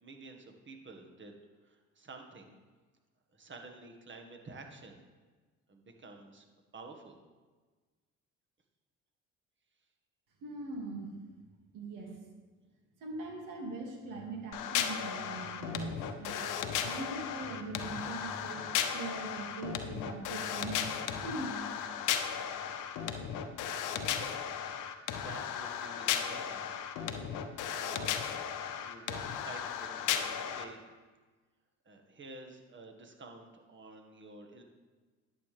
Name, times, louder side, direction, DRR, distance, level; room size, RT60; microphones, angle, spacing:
voice 1, 0.0-1.3 1.6-2.6 3.3-5.0 5.7-6.4 6.7-7.2 23.9-26.7 27.7-28.2 28.8-30.8 31.8-34.6, right 3 dB, 35° right, 4 dB, 1.7 m, -50 dB
voice 2, 10.4-11.1 11.7-12.1 13.0-20.8 21.2-21.6, right 3 dB, 75° right, 0 dB, 2.4 m, -41 dB
sound 1, 14.5-30.6, left 9 dB, 70° left, 0.8 m, -35 dB
11.0 x 7.8 x 3.4 m, 1.4 s
supercardioid pair, 70°, 32 cm